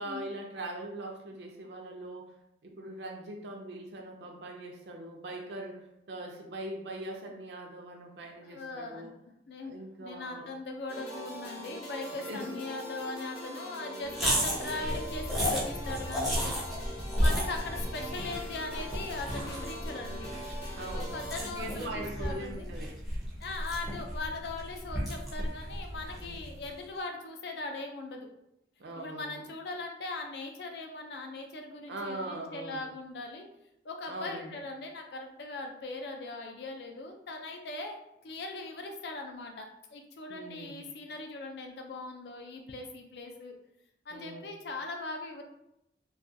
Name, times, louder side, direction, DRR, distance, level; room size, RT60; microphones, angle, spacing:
voice 1, 0.0-2.3 2.6-9.2 9.6-10.5 12.1-12.6 14.2-14.4 17.2-17.6 20.8-21.0 21.4-23.0 26.2-26.5 28.8-29.5 31.9-32.9 34.1-34.5 40.3-40.8 44.1-44.4, right 1 dB, 70° right, 1 dB, 0.5 m, -41 dB
voice 2, 8.4-9.1 9.5-16.5 17.2-20.3 20.8-22.7 23.4-28.3 29.0-33.4 33.8-38.0 38.2-43.5 44.1-45.4, left 2 dB, 65° left, 3 dB, 0.4 m, -40 dB
sound 1, 10.9-21.5, left 1 dB, 35° left, 0.7 m, -43 dB
sound 2, 14.1-26.6, equal, ahead, 0.5 m, -33 dB
2.3 x 2.2 x 2.6 m, 0.81 s
head